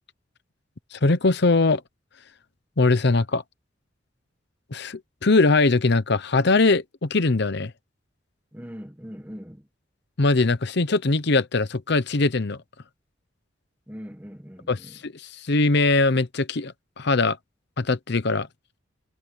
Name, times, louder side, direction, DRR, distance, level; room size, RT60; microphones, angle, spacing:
voice 1, 0.9-1.8 2.8-3.4 4.7-7.7 10.2-12.6 14.7-17.4 17.8-18.5, left 3 dB, 65° left, 0.9 m, -21 dB
voice 2, 8.5-9.7 13.9-15.0, equal, 10° right, 1.6 m, -41 dB
head